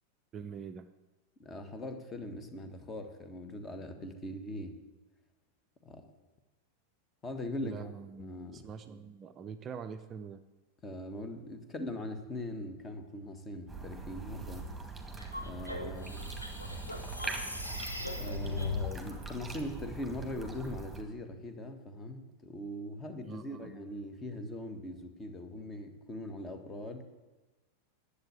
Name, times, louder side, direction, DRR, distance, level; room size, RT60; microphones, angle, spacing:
voice 1, 0.3-0.9 7.6-10.4 23.2-23.8, right 6 dB, 25° right, 8 dB, 0.6 m, -44 dB
voice 2, 1.4-4.8 5.8-6.0 7.2-7.9 8.2-8.6 10.8-14.7 15.4-16.3 18.2-27.0, left 1 dB, 20° left, 7 dB, 1.5 m, -41 dB
sound 1, 13.7-21.0, right 3 dB, 5° right, 2.0 m, -42 dB
sound 2, 15.2-18.9, left 2 dB, 85° left, 1.5 m, -38 dB
10.5 x 8.2 x 8.3 m, 1.2 s
figure-of-eight pair, 90°, 0 cm